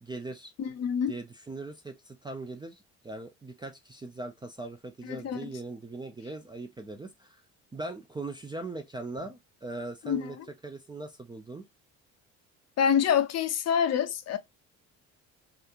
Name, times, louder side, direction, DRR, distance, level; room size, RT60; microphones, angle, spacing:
voice 1, 0.0-0.5 1.1-7.4 7.7-10.4 10.6-11.7, right 2 dB, 15° right, 0.4 m, -40 dB
voice 2, 0.6-1.2 5.1-5.5 10.0-10.4 12.8-14.4, left 8 dB, 45° left, 0.5 m, -26 dB
2.8 x 2.4 x 2.3 m
hypercardioid pair, 65°, 38 cm